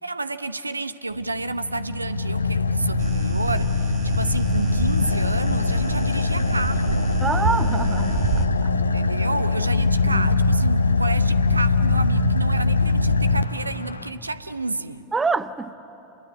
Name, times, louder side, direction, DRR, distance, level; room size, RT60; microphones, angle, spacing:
voice 1, 0.0-7.1 8.9-15.1, right 2 dB, 80° right, 0.8 m, -30 dB
Car / Idling, 1.1-14.1, left 3 dB, 80° left, 0.9 m, -22 dB
sound 1, 3.0-8.5, right 7 dB, 35° right, 1.8 m, -29 dB
voice 2, 7.2-8.5 10.0-10.3 15.1-15.8, right 4 dB, 15° right, 0.7 m, -26 dB
28.5 x 22.5 x 8.5 m
figure-of-eight pair, 90°, 0 cm